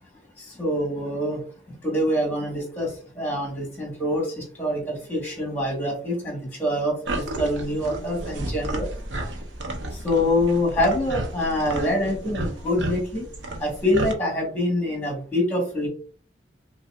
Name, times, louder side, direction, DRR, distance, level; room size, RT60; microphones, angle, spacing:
voice 1, 0.4-1.4 1.7-2.9 3.1-8.9 10.0-13.3 13.6-15.9, left 1 dB, 10° left, 0 dB, 1.3 m, -25 dB
sound 1, 7.0-14.1, right 1 dB, 80° right, 0.7 m, -32 dB
5.3 x 2.3 x 2.4 m, 0.43 s
head